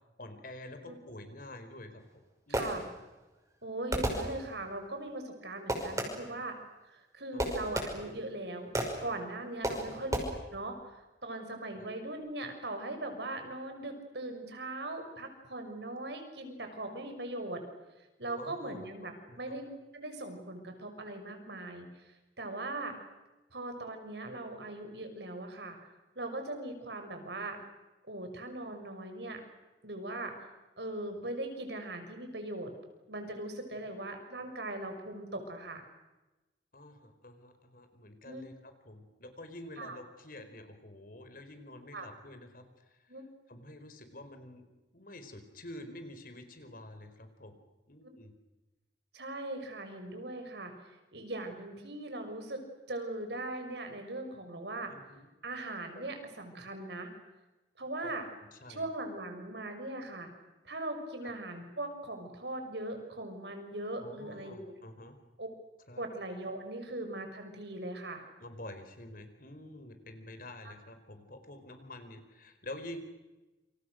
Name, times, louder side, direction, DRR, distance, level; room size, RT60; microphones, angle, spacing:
voice 1, 0.2-2.0 2.5-2.7 7.3-7.7 9.7-10.1 11.7-11.9 18.4-19.6 33.8-33.9 36.7-43.0 43.5-44.6 44.9-47.6 47.9-48.3 54.9-55.3 55.9-56.1 58.0-58.2 58.5-58.9 64.0-65.2 65.9-66.0 68.4-73.0, left 1 dB, 50° left, 8 dB, 4.6 m, -48 dB
Fireworks, 2.0-3.2 3.9-4.8 5.7-6.4 7.4-8.3 8.7-9.2 9.6-10.2, right 1 dB, 20° right, 5.8 m, -34 dB
voice 2, 2.5-2.8 3.6-6.5 6.9-8.7 9.0-10.2 10.5-17.6 18.2-19.1 19.4-22.1 22.4-22.9 23.5-25.8 26.2-27.6 28.0-29.4 29.8-30.3 30.8-32.7 33.1-35.8 38.2-38.4 39.8-40.0 41.9-42.1 43.1-43.2 49.1-52.6 52.9-54.9 55.4-57.1 57.8-58.2 58.7-60.3 60.6-64.8 65.4-65.5 66.0-68.2, right 2 dB, 70° right, 5 dB, 6.1 m, -40 dB
28.5 x 28.0 x 6.5 m, 1.1 s
head